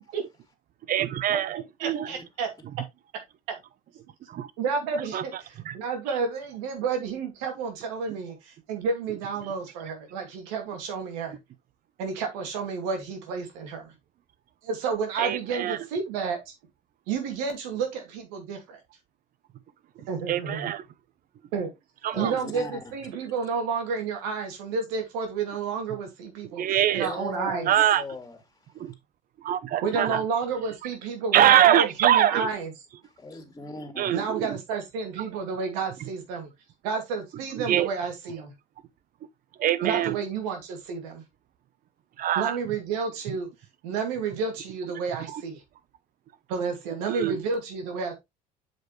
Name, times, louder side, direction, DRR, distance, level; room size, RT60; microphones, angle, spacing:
voice 1, 0.9-1.6 1.8-2.1 4.3-4.5 5.1-5.2 5.7-5.8 15.2-15.8 20.3-20.8 22.0-22.3 26.6-27.1 27.7-28.0 28.8-28.9 29.4-30.2 31.3-32.5 34.0-34.5 37.7-37.9 39.6-40.2 42.2-42.6 47.1-47.4, right 11 dB, 55° right, 0.8 m, -23 dB
voice 2, 1.8-2.5 4.6-11.4 12.0-13.9 14.6-16.5 17.1-18.8 20.1-20.7 21.5-21.7 22.1-27.7 29.8-32.7 34.1-36.5 36.8-38.5 39.8-41.2 42.3-43.5 43.8-45.6 46.5-48.1, right 5 dB, 85° right, 2.5 m, -30 dB
voice 3, 22.1-22.8 27.0-27.7 27.9-28.4 33.2-34.1, left 3 dB, 20° left, 2.2 m, -38 dB
7.6 x 5.3 x 3.2 m
supercardioid pair, 75°, 18 cm